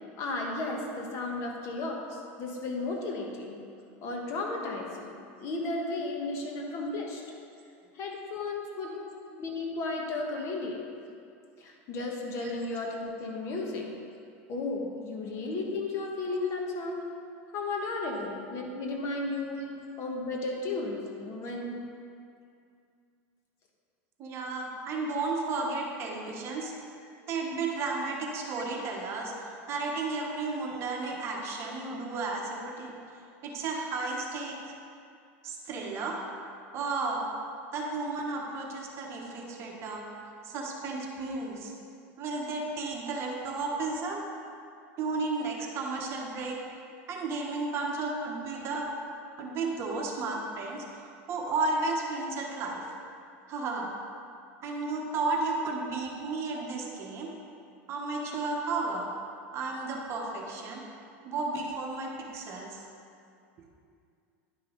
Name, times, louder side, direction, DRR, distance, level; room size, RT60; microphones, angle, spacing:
voice 1, 0.2-3.6 4.0-7.2 7.9-8.9 9.3-10.8 11.6-13.9 14.5-17.1 17.5-19.7 20.0-21.9, left 2 dB, 40° left, 0 dB, 1.2 m, -34 dB
voice 2, 24.2-26.7 27.3-32.9 33.4-34.7 35.4-36.2 36.7-37.3 37.7-40.0 40.4-41.7 42.2-44.2 45.0-46.6 47.1-48.9 49.4-52.9 53.5-53.9 54.6-57.3 57.9-59.1 59.5-60.8 61.2-62.8, right 3 dB, 40° right, 0 dB, 1.1 m, -33 dB
10.5 x 5.5 x 3.9 m, 2.4 s
supercardioid pair, 150°, 7 cm